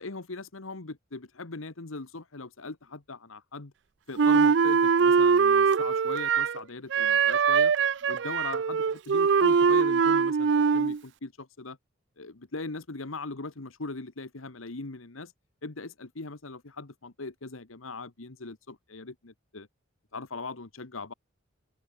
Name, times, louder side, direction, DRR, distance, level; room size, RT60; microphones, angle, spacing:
voice 1, 0.0-3.7 4.1-7.7 8.1-11.8 12.2-15.3 15.6-19.7 20.1-21.1, left 3 dB, 85° left, 1.5 m, -40 dB
Wind instrument woodwind instrument, 4.2-6.6 6.9-11.0, right 6 dB, 60° right, 0.4 m, -22 dB
open air
head